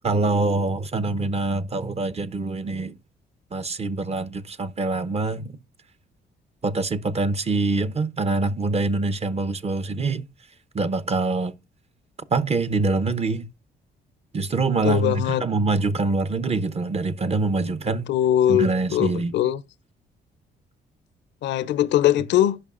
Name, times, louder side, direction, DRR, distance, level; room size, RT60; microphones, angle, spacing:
voice 1, 0.0-3.0 3.5-5.5 6.6-10.2 10.7-11.5 12.3-13.5 14.3-18.0 18.5-19.3, right 3 dB, 35° right, 0.8 m, -24 dB
voice 2, 14.8-15.4 18.1-19.6 21.4-22.6, left 11 dB, 75° left, 0.6 m, -21 dB
11.0 x 5.4 x 2.5 m
supercardioid pair, 70°, 19 cm